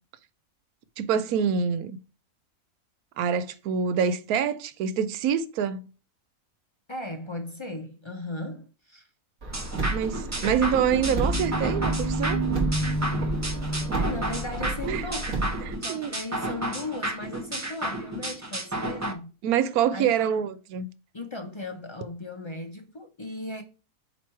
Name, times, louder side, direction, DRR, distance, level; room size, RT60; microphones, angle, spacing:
voice 1, 1.0-2.0 3.2-5.8 9.9-12.4 14.8-15.0 15.7-16.1 19.4-20.9, right 8 dB, 85° right, 1.1 m, -26 dB
voice 2, 6.9-9.1 13.9-15.4 15.8-19.3 19.9-20.4 21.1-23.6, left 2 dB, 50° left, 0.3 m, -37 dB
Car, 9.4-15.7, right 2 dB, 65° right, 2.1 m, -32 dB
sound 1, 9.5-19.1, right 1 dB, 20° right, 0.5 m, -32 dB
sound 2, 10.2-15.7, right 1 dB, 50° right, 1.4 m, -31 dB
8.2 x 3.0 x 4.5 m
omnidirectional pair, 1.5 m